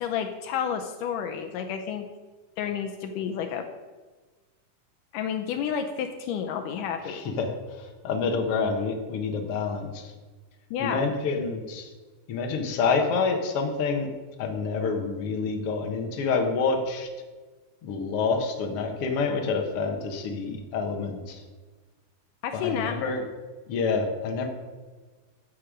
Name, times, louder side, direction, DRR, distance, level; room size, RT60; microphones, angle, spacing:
voice 1, 0.0-2.1 2.6-3.7 5.1-7.3 10.7-11.1 22.4-22.9, left 8 dB, 80° left, 6 dB, 2.2 m, -30 dB
voice 2, 7.1-10.1 10.8-11.9 12.3-14.1 14.4-17.1 17.8-21.4 22.5-23.2 23.7-24.5, left 4 dB, 55° left, 2 dB, 1.8 m, -28 dB
14.0 x 7.1 x 5.1 m, 1.4 s
omnidirectional pair, 3.9 m